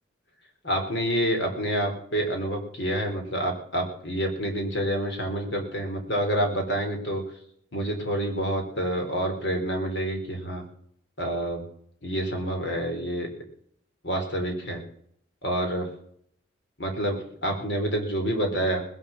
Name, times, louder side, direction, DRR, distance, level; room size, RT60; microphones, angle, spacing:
voice 1, 0.6-7.2 7.7-10.6 11.2-11.6 12.0-13.3 14.0-14.8 15.4-15.9 16.8-18.8, right 1 dB, 60° left, 3 dB, 3.6 m, -28 dB
19.5 x 7.4 x 7.0 m, 0.66 s
head